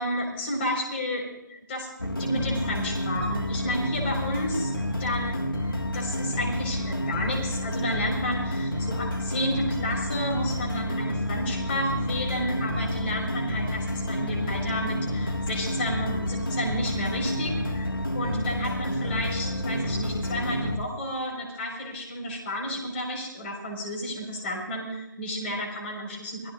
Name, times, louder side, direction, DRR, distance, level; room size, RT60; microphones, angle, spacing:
voice 1, 0.0-5.4 5.7-17.9 18.1-26.5, equal, 30° left, 0 dB, 4.9 m, -32 dB
sound 1, 2.0-20.8, left 1 dB, 90° left, 1.9 m, -29 dB
25.0 x 17.0 x 2.6 m, 0.89 s
figure-of-eight pair, 150°, 11 cm